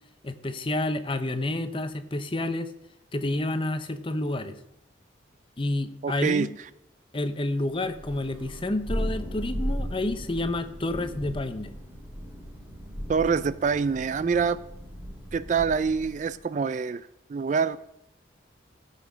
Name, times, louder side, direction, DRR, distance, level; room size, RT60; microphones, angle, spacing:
voice 1, 0.2-2.7 3.1-4.6 5.6-6.5 7.1-11.7, left 2 dB, 25° left, 10 dB, 0.7 m, -29 dB
voice 2, 6.0-6.5 13.1-14.6 15.3-17.8, right 5 dB, 40° right, 16 dB, 0.3 m, -25 dB
Thunder, 7.9-16.3, equal, 10° right, 3.6 m, -36 dB
15.5 x 5.8 x 6.1 m, 0.81 s
head